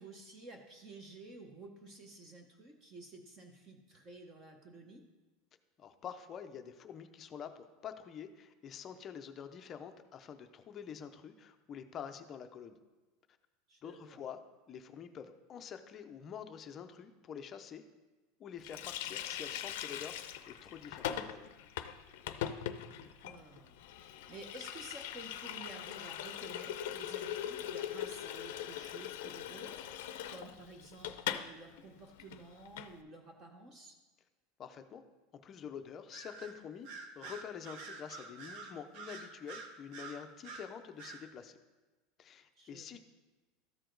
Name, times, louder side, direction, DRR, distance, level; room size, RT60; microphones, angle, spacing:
voice 1, 0.0-5.0 13.7-14.2 22.9-34.0 42.6-43.0, right 2 dB, 25° right, 4 dB, 0.7 m, -52 dB
voice 2, 5.8-12.8 13.8-14.4 14.7-17.8 18.4-21.5 34.6-35.0 35.4-36.9 37.2-41.6 42.2-43.0, left 7 dB, 25° left, 7 dB, 0.5 m, -47 dB
Water tap faucet, 18.6-31.5 31.8-31.9 32.2-32.9, left 11 dB, 75° left, 0.5 m, -41 dB
Bird vocalization bird call bird song, 36.1-36.5 36.8-40.7 41.0-41.2, right 4 dB, 50° right, 0.9 m, -47 dB
13.5 x 4.8 x 3.8 m, 1.2 s
supercardioid pair, 175°, 0 cm